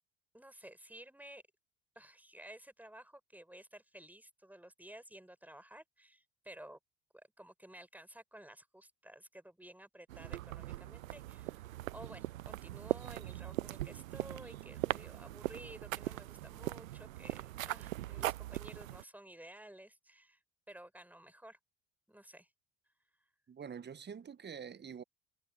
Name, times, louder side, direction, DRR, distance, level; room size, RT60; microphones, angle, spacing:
voice 1, 0.3-1.4 1.9-6.8 7.1-20.4 20.7-21.6 22.1-22.5, right 1 dB, 5° right, 6.5 m, -54 dB
sound 1, 10.1-19.0, right 15 dB, 80° right, 0.5 m, -40 dB
voice 2, 23.5-25.0, right 7 dB, 25° right, 1.1 m, -46 dB
figure-of-eight pair, 60°, 40 cm